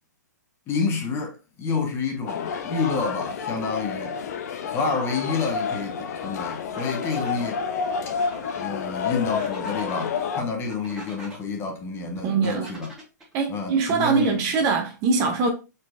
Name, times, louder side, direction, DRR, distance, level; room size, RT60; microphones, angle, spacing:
voice 1, 0.7-4.2 4.7-7.6 8.6-12.9 13.5-14.4, left 4 dB, 25° left, 1.3 m, -29 dB
sound 1, 2.3-10.4, left 6 dB, 60° left, 0.7 m, -30 dB
sound 2, 5.4-5.6 6.7-7.5 8.2-8.6 9.4-10.1 10.7-11.4 12.5-13.3, right 1 dB, 5° right, 2.2 m, -43 dB
voice 2, 12.2-12.7 13.3-15.5, right 5 dB, 35° right, 1.0 m, -23 dB
4.5 x 4.1 x 2.6 m
hypercardioid pair, 125°, 10 cm